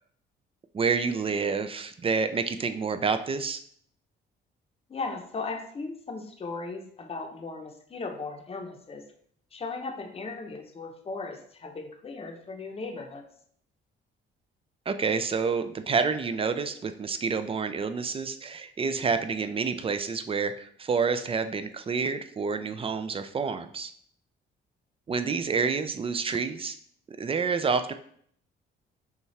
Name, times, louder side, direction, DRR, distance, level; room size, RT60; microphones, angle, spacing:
voice 1, 0.7-3.6 14.9-23.9 25.1-26.8 27.2-27.9, right 5 dB, 30° right, 10 dB, 0.4 m, -28 dB
voice 2, 4.9-9.0 9.5-13.2, left 3 dB, 30° left, 3 dB, 0.7 m, -37 dB
5.4 x 2.4 x 3.2 m, 0.62 s
cardioid pair, 90°, 20 cm